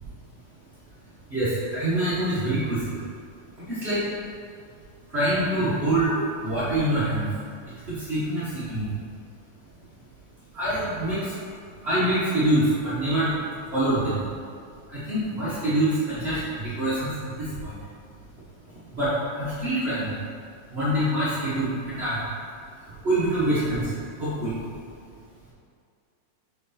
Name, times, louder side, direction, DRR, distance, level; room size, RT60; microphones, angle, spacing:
voice 1, 1.3-2.8 3.6-4.0 5.1-7.3 7.9-8.9 10.5-11.3 11.8-13.3 13.7-14.2 14.9-17.1 17.4-17.8 18.9-20.1 20.7-22.2 23.0-23.9 24.2-24.5, right 1 dB, 45° right, -13 dB, 0.8 m, -25 dB
6.3 x 4.9 x 4.3 m, 2.3 s
omnidirectional pair, 3.5 m